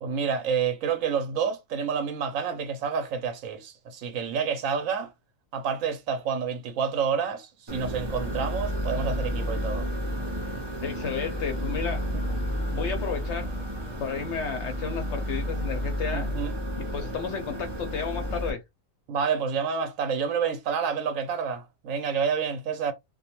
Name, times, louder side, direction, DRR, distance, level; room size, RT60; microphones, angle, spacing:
voice 1, 0.0-5.1 5.5-9.9 16.1-16.5 19.1-22.9, right 6 dB, 70° right, 0.9 m, -29 dB
sound 1, 7.7-18.5, equal, 35° right, 0.4 m, -31 dB
voice 2, 10.8-12.1 12.7-13.5 14.0-16.3 16.9-18.6, left 6 dB, 65° left, 0.7 m, -32 dB
2.4 x 2.2 x 2.8 m
omnidirectional pair, 1.5 m